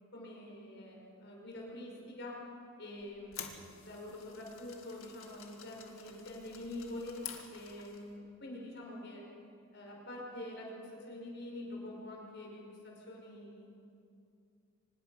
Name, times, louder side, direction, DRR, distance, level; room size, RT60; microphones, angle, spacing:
voice 1, 0.1-2.4 2.8-3.5 3.8-7.2 7.5-9.2 9.7-13.7, left 1 dB, 55° left, -1 dB, 5.5 m, -46 dB
sound 1, 3.0-8.1, left 8 dB, 80° left, 2.1 m, -50 dB
24.5 x 20.0 x 5.7 m, 2.5 s
head